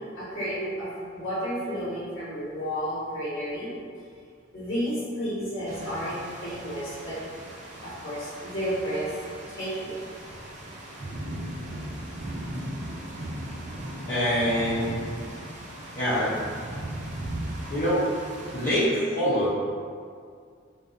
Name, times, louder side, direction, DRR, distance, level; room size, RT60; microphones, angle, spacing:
voice 1, 0.0-3.7 4.5-7.2 7.8-9.1 9.5-10.0, equal, 70° left, -15 dB, 1.3 m, -32 dB
sound 1, 5.7-18.9, right 1 dB, 40° right, 0.4 m, -38 dB
voice 2, 14.1-15.0 15.9-16.3 17.7-18.0 18.5-19.5, equal, 45° left, -13 dB, 0.6 m, -24 dB
2.6 x 2.4 x 2.4 m, 2.2 s
head